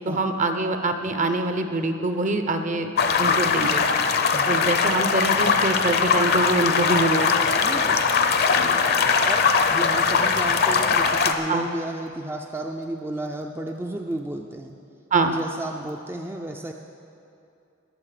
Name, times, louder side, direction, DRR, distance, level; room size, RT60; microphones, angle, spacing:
voice 1, 0.0-2.9 3.2-3.8 4.5-7.4 8.5-8.7 11.5-11.7 15.1-15.4, right 2 dB, 40° right, 7 dB, 0.8 m, -24 dB
sound 1, 3.0-11.3, left 5 dB, 55° left, 0.7 m, -21 dB
voice 2, 7.6-8.0 9.2-9.4 9.7-14.8 15.2-16.7, right 1 dB, 10° right, 2 dB, 0.4 m, -33 dB
19.5 x 7.3 x 5.0 m, 2.7 s
head